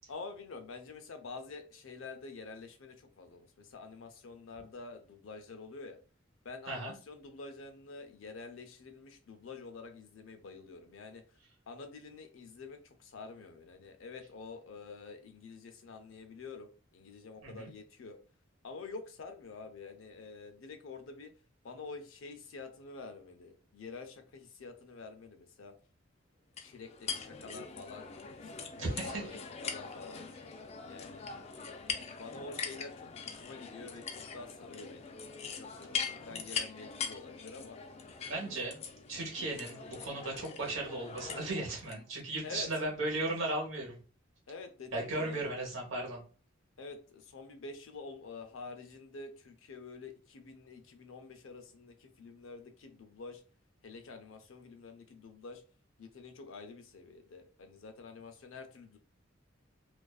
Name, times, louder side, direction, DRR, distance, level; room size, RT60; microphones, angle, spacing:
voice 1, 0.1-6.0 6.4-11.2 11.7-18.2 18.6-21.3 21.6-25.7 26.6-28.0 28.4-30.2 30.8-31.2 32.2-34.0 34.3-35.1 35.5-36.0 36.3-37.8 42.4-42.7 44.5-45.5 46.8-53.4 53.8-55.6 56.0-59.0, left 4 dB, 90° left, 7 dB, 0.5 m, -48 dB
sound 1, 26.6-42.0, left 5 dB, 35° left, 0.3 m, -42 dB
voice 2, 28.8-29.3 38.3-38.8 39.1-44.0 44.9-46.2, right 2 dB, 75° right, -1 dB, 1.0 m, -36 dB
2.5 x 2.3 x 2.3 m, 0.37 s
head